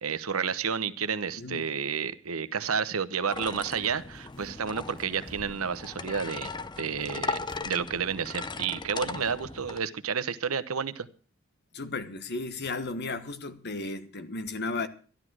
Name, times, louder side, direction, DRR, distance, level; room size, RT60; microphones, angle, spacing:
voice 1, 0.0-6.5 6.8-11.1, right 6 dB, 90° right, 0.9 m, -31 dB
voice 2, 1.4-1.7 11.7-14.9, left 3 dB, 50° left, 1.3 m, -34 dB
sound 1, 3.3-9.8, left 4 dB, 20° left, 0.6 m, -38 dB
sound 2, 3.5-3.6 3.8-4.7 5.0-5.8 6.3-7.2 7.4-7.7 8.0-8.1 8.6-8.7, right 1 dB, 5° left, 6.0 m, -51 dB
13.5 x 11.5 x 6.2 m
head